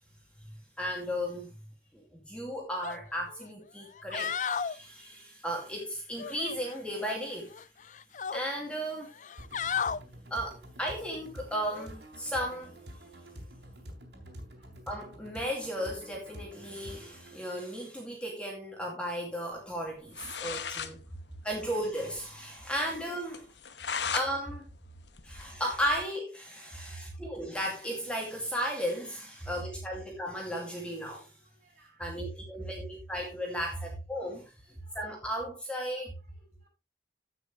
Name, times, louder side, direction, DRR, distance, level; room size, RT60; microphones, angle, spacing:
voice 1, 0.8-1.5 1.9-7.5 8.3-9.1 10.3-12.7 14.9-21.0 21.4-23.5 24.1-24.7 25.2-31.3 32.0-36.1, equal, 5° left, 2.4 m, -35 dB
sound 1, 2.8-3.0 3.4-3.5 4.0-4.8 6.2-7.1 7.5-8.4 9.1-10.0 11.7-11.9, left 7 dB, 45° left, 0.4 m, -34 dB
sound 2, 9.4-17.4, equal, 75° right, 4.0 m, -48 dB
voice 2, 14.2-14.7 21.1-21.2 24.0-24.1 25.3-25.6 26.6-27.5 29.4-29.5 31.4-32.3 32.6-32.7 33.7-33.8 34.8-35.1 36.3-36.7, right 2 dB, 40° right, 6.7 m, -46 dB
sound 3, 19.9-20.0 20.1-20.9 21.3-21.4 21.6-21.7 22.1-22.2 22.6-22.7 23.3-24.3 24.7-26.0, left 6 dB, 85° left, 1.1 m, -36 dB
15.5 x 6.4 x 3.3 m
head